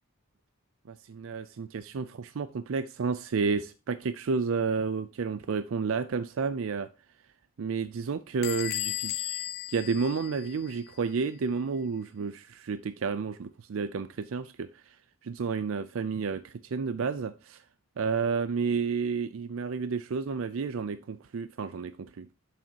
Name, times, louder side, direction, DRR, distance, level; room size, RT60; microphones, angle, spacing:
voice 1, 0.9-6.9 7.6-15.0 15.2-17.6 18.0-22.3, right 5 dB, 70° right, 0.4 m, -31 dB
Bell / Door, 8.4-10.9, left 15 dB, 45° left, 0.3 m, -35 dB
8.3 x 7.3 x 2.8 m
head